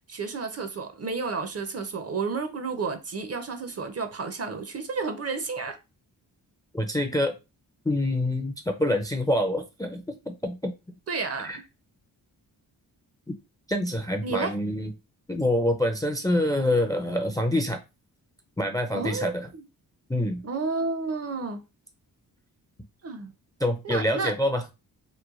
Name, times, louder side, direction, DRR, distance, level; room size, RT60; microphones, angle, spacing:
voice 1, 0.1-5.8 11.1-11.5 14.2-14.6 18.9-19.6 20.4-21.6 23.0-23.3 23.8-24.3, right 4 dB, 40° right, 0.6 m, -31 dB
voice 2, 6.7-7.4 7.9-10.7 11.4-11.6 13.3-13.4 13.7-14.9 15.3-17.8 18.6-19.5 20.1-20.4 23.6-24.6, left 1 dB, 10° left, 0.4 m, -26 dB
3.1 x 2.1 x 2.4 m
cardioid pair, 50°, 41 cm